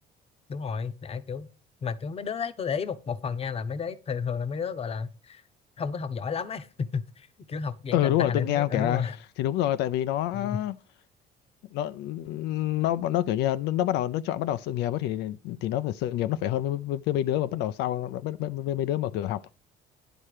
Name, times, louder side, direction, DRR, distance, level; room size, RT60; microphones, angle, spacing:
voice 1, 0.5-1.5 1.8-5.4 5.8-9.2 10.3-10.6, left 6 dB, 35° left, 0.8 m, -32 dB
voice 2, 7.9-9.1 9.4-10.8 11.7-19.5, left 13 dB, 85° left, 0.5 m, -27 dB
10.0 x 4.4 x 4.9 m
cardioid pair, 110°, 17 cm